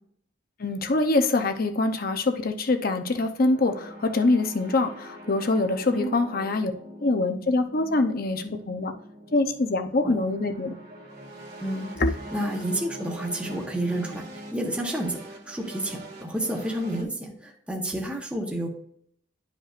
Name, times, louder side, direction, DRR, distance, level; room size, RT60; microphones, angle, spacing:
voice 1, 0.6-6.7 7.0-8.9 9.3-10.7 12.0-12.1, left 2 dB, 50° left, 6 dB, 0.8 m, -24 dB
sound 1, 3.5-17.0, right 1 dB, 55° right, 2.1 m, -43 dB
voice 2, 12.3-15.2 15.5-18.7, right 1 dB, 5° right, 0 dB, 1.1 m, -30 dB
11.5 x 5.2 x 2.5 m, 0.65 s
head